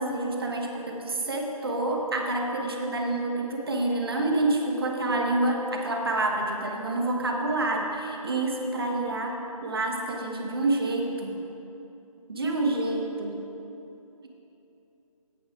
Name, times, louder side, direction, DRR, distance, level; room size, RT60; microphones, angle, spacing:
voice 1, 0.0-11.3 12.3-13.4, right 2 dB, 40° right, 1 dB, 1.1 m, -28 dB
8.7 x 7.9 x 4.9 m, 2.9 s
figure-of-eight pair, 155°, 19 cm